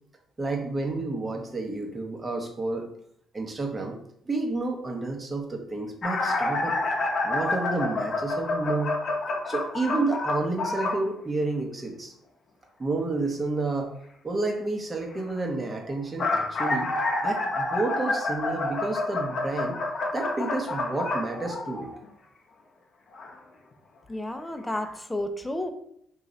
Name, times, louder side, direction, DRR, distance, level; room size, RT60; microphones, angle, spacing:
voice 1, 0.4-2.9 3.3-4.0 4.3-6.8 7.2-8.9 9.5-12.1 12.8-13.9 14.2-16.9 17.2-19.8 20.1-21.9, right 3 dB, 30° right, 3 dB, 0.8 m, -30 dB
sound 1, 6.0-11.0 15.9-22.0 23.1-23.3 24.3-24.4 24.8-24.9, left 2 dB, 55° left, 0.6 m, -28 dB
voice 2, 24.1-25.7, left 1 dB, 15° left, 7 dB, 0.5 m, -31 dB
3.0 x 2.4 x 3.8 m, 0.70 s
supercardioid pair, 60°, 0 cm